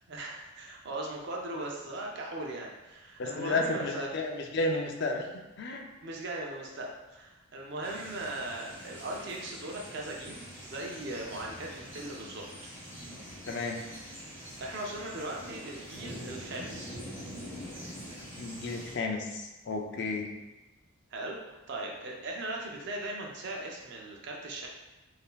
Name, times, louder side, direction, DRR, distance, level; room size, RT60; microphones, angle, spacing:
voice 1, 0.1-4.1 6.0-12.5 14.6-17.0 21.1-24.7, right 2 dB, 50° right, -1 dB, 0.5 m, -39 dB
voice 2, 3.2-5.2 5.6-5.9 13.5-13.8 18.4-20.3, left 2 dB, 50° left, 2 dB, 0.4 m, -32 dB
sound 1, 7.8-19.0, equal, 10° right, 0.9 m, -45 dB
3.6 x 2.6 x 2.3 m, 1.1 s
head